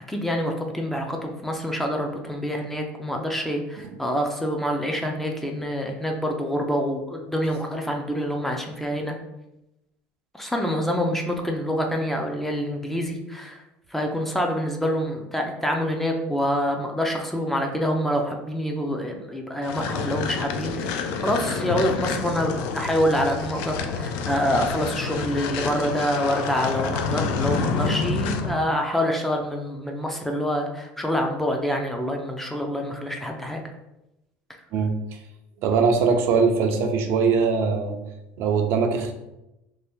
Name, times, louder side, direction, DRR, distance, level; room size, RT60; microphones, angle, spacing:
voice 1, 0.1-9.2 10.3-13.6 13.9-33.6, equal, 5° left, 2 dB, 0.4 m, -26 dB
sound 1, 19.6-28.6, left 5 dB, 75° left, 0.4 m, -28 dB
voice 2, 34.7-35.2 35.6-38.0 38.4-39.1, right 5 dB, 60° right, 5 dB, 0.4 m, -22 dB
2.7 x 2.5 x 3.5 m, 0.92 s
supercardioid pair, 120°, 5 cm